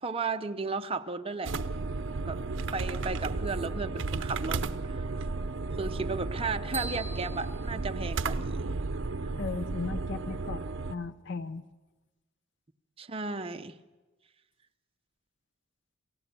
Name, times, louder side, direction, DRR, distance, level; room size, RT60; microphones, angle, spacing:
voice 1, 0.0-1.5 2.2-2.4 2.7-5.1 5.8-8.7 13.0-13.8, right 4 dB, 25° right, 7 dB, 0.8 m, -34 dB
sound 1, 1.4-10.9, right 3 dB, 65° right, 0.7 m, -33 dB
sound 2, 6.7-8.7, right 4 dB, 10° right, 2.4 m, -43 dB
voice 2, 9.4-10.6 10.9-11.6, left 4 dB, 60° left, 13 dB, 0.8 m, -36 dB
28.0 x 15.0 x 6.9 m, 1.2 s
head